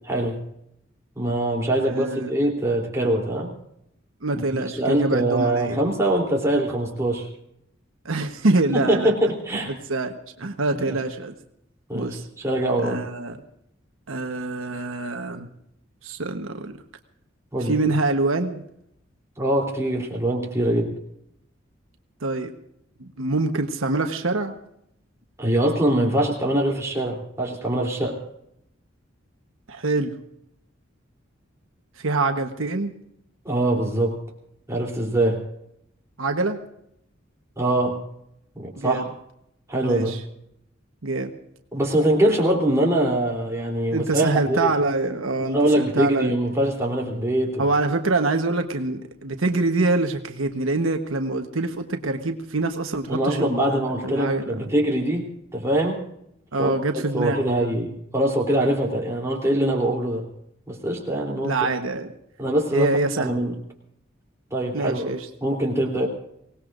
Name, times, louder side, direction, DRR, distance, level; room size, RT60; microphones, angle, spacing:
voice 1, 1.1-3.5 4.3-7.3 8.7-9.7 10.7-11.0 11.9-13.0 17.5-17.8 19.4-21.0 25.4-28.2 33.4-34.2 34.7-35.4 37.6-38.0 38.5-39.1 39.7-40.2 41.7-44.7 45.5-47.6 53.1-56.1 56.6-56.7 57.1-60.2 60.7-61.5 62.4-62.9 63.2-63.5 64.5-65.1 65.4-66.1, right 1 dB, 15° right, -2 dB, 3.4 m, -23 dB
voice 2, 1.8-2.3 4.2-5.8 8.0-9.1 9.7-11.3 11.9-12.3 12.8-13.4 14.1-15.5 16.0-16.8 17.6-18.7 22.2-22.5 23.0-24.6 29.7-30.2 32.0-32.9 36.2-36.6 38.8-39.1 39.8-40.2 41.0-41.3 43.9-46.3 47.6-54.7 56.5-57.8 61.4-62.1 62.7-63.3 64.7-65.3, right 2 dB, 85° right, 5 dB, 1.2 m, -25 dB
24.5 x 18.5 x 2.6 m, 0.76 s
head